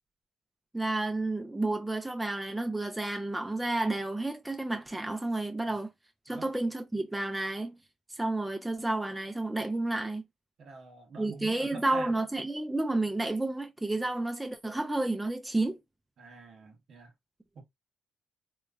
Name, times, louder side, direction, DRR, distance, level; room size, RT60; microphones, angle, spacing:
voice 1, 0.7-5.9 6.3-7.8 8.1-10.2 11.2-15.8, right 2 dB, 10° right, 0.4 m, -31 dB
voice 2, 10.6-12.1 16.2-17.1 17.5-17.6, right 4 dB, 60° right, 0.9 m, -46 dB
2.9 x 2.2 x 2.3 m
cardioid pair, 90°, 0 cm